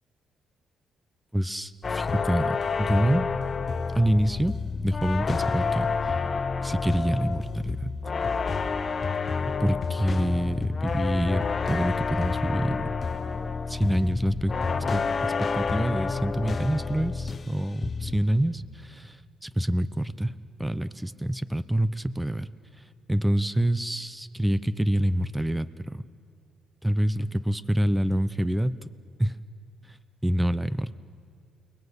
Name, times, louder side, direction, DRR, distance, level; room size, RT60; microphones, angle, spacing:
voice 1, 1.3-3.3 3.9-4.5 4.8-5.9 6.6-8.0 9.5-12.9 13.7-14.5 14.9-19.2 19.4-22.5 23.1-26.0 26.8-28.9 29.2-29.4 29.9-30.0 30.2-30.9, equal, 5° right, 15 dB, 0.9 m, -26 dB
sound 1, 1.8-17.5 17.8-18.3, left 5 dB, 35° left, 1.1 m, -29 dB
29.0 x 21.0 x 8.2 m, 2.1 s
cardioid pair, 90°, 0 cm